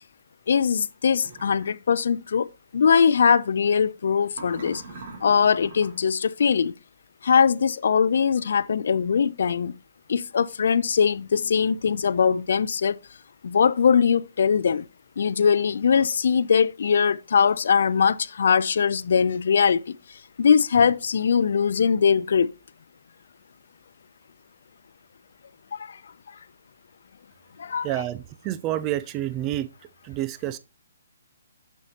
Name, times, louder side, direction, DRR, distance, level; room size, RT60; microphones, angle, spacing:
voice 1, 0.5-2.5 2.7-4.8 5.2-6.7 7.2-9.8 10.1-13.0 13.4-14.9 15.2-22.5 25.7-26.0 27.6-27.9, left 6 dB, 65° left, 0.3 m, -21 dB
sound 1, 1.2-1.7 4.3-6.1, right 3 dB, 45° right, 2.4 m, -43 dB
voice 2, 27.8-29.7 30.0-30.6, right 13 dB, 20° right, 0.3 m, -28 dB
6.4 x 6.3 x 2.8 m
hypercardioid pair, 160°, 0 cm